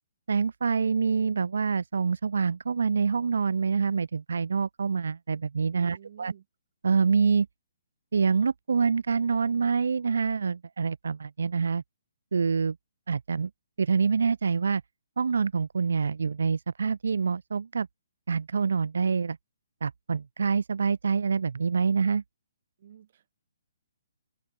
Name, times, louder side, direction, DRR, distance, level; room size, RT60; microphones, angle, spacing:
voice 1, 0.3-6.3 6.8-7.5 8.1-11.8 12.3-12.8 13.1-13.5 13.8-14.8 15.2-17.9 18.3-19.4 19.8-22.2, right 5 dB, 80° right, 0.3 m, -26 dB
voice 2, 5.7-6.4 22.8-23.3, right 10 dB, 45° right, 1.2 m, -51 dB
hypercardioid pair, 165°, 0 cm